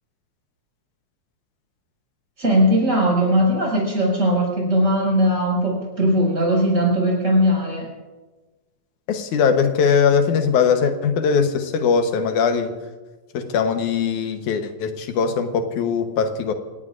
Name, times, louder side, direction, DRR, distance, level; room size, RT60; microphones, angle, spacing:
voice 1, 2.4-7.9, equal, 25° right, -3 dB, 6.4 m, -19 dB
voice 2, 9.1-12.8 13.3-16.5, left 6 dB, 90° left, 7 dB, 2.6 m, -20 dB
28.5 x 18.0 x 2.5 m, 1.2 s
omnidirectional pair, 3.4 m